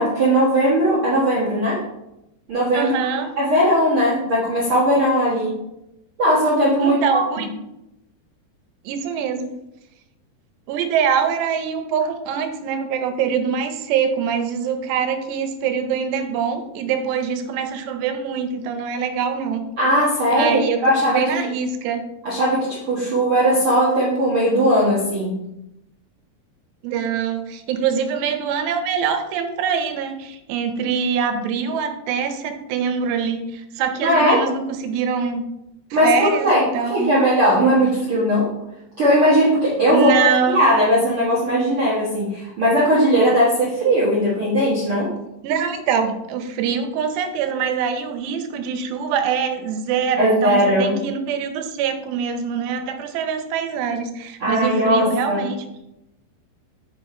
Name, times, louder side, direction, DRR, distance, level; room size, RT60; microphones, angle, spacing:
voice 1, 0.0-1.8 2.5-2.9 3.4-5.6 6.2-7.2 19.8-21.5 22.2-25.4 34.0-34.4 35.9-38.5 39.0-45.1 50.2-51.0 54.4-55.5, equal, 55° right, -8 dB, 1.5 m, -18 dB
voice 2, 2.7-3.3 6.8-7.5 8.9-9.6 10.7-19.6 20.3-22.0 26.8-35.4 36.0-37.2 39.9-40.6 45.4-55.6, right 6 dB, 80° right, 7 dB, 2.8 m, -24 dB
6.2 x 5.5 x 4.3 m, 0.89 s
omnidirectional pair, 5.0 m